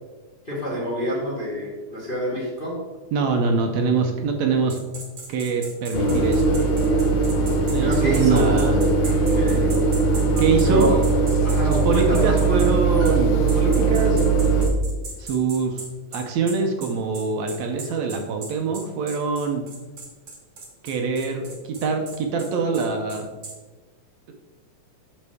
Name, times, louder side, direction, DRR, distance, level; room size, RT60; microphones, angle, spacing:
voice 1, 0.4-2.7 7.8-8.6 9.4-9.7 10.6-11.0 11.4-12.7, left 1 dB, 20° left, -4 dB, 1.5 m, -27 dB
voice 2, 3.1-4.8 5.3-6.6 7.7-8.8 10.4-11.0 11.7-14.2 15.2-15.8 16.1-19.6 20.8-23.3, right 4 dB, 75° right, 3 dB, 1.9 m, -24 dB
sound 1, 4.7-12.7 13.0-13.2 13.5-23.6, right 3 dB, 45° right, 1.2 m, -38 dB
sound 2, 5.9-14.7, right 3 dB, 90° left, 1.0 m, -20 dB
8.1 x 6.6 x 3.5 m, 1.2 s
omnidirectional pair, 3.4 m